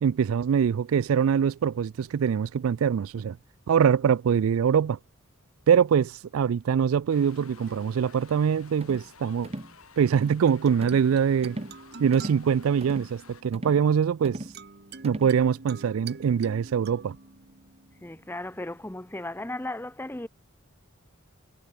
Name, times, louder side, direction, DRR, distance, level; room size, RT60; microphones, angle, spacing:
voice 1, 0.0-3.4 3.7-5.0 5.7-9.5 10.0-11.6 12.0-14.4 15.0-17.2, right 7 dB, 75° right, 0.3 m, -23 dB
sound 1, 7.1-13.4, left 5 dB, 90° left, 7.6 m, -54 dB
sound 2, 7.3-9.1 10.5-19.0, right 3 dB, 50° right, 1.9 m, -47 dB
sound 3, 8.8-9.1 9.4-9.7 10.1-10.4 10.8-11.1 11.4-11.8 12.1-12.4 12.8-13.1 13.5-13.9 14.2-14.6 15.0-15.4, right 1 dB, 30° right, 1.2 m, -38 dB
voice 2, 18.0-20.3, left 1 dB, 10° left, 0.8 m, -35 dB
head